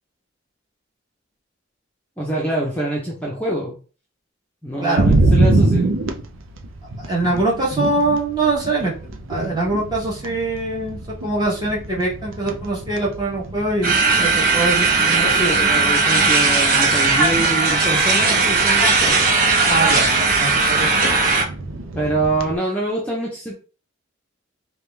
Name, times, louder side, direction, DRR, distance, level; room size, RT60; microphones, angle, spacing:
voice 1, 2.2-3.8 4.6-5.9 15.3-19.3 22.0-23.5, right 1 dB, 5° left, -4 dB, 0.8 m, -25 dB
voice 2, 4.8-5.2 7.0-15.7 19.7-20.9, right 2 dB, 20° right, -4 dB, 1.5 m, -23 dB
sound 1, 5.0-22.5, right 2 dB, 85° right, 0.6 m, -26 dB
sound 2, 13.8-21.4, right 3 dB, 45° right, 1.0 m, -17 dB
5.1 x 2.4 x 3.3 m, 0.37 s
head